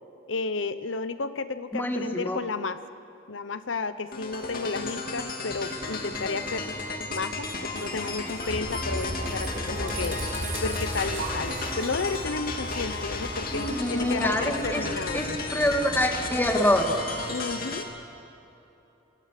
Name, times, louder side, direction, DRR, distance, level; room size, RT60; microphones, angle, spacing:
voice 1, 0.3-2.8 3.3-6.7 7.1-10.2 10.6-15.2 17.3-17.9, left 4 dB, 75° left, 12 dB, 0.8 m, -32 dB
voice 2, 1.7-2.4 13.5-17.0, left 1 dB, 10° left, 4 dB, 2.1 m, -26 dB
sound 1, 4.1-17.8, left 3 dB, 50° left, 2.6 m, -34 dB
sound 2, 7.7-14.6, right 5 dB, 75° right, 3.6 m, -42 dB
sound 3, 8.5-17.2, equal, 40° right, 3.9 m, -37 dB
27.0 x 25.0 x 6.7 m, 2.9 s
head